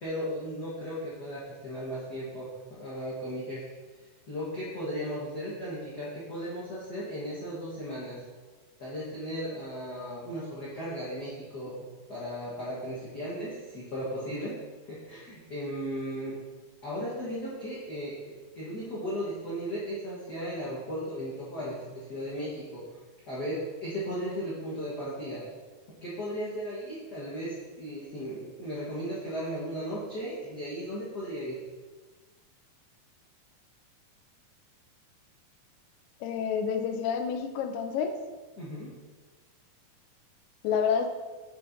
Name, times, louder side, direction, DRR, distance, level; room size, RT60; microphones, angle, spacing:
voice 1, 0.0-3.7 4.3-8.2 8.8-11.8 12.1-14.6 14.8-16.3 16.8-18.1 18.5-22.8 23.3-25.4 26.0-31.6 38.6-38.9, equal, 50° left, -8 dB, 1.3 m, -36 dB
voice 2, 36.2-38.2 40.6-41.1, left 7 dB, 90° left, 5 dB, 2.3 m, -28 dB
8.6 x 5.7 x 2.7 m, 1.4 s
omnidirectional pair, 3.8 m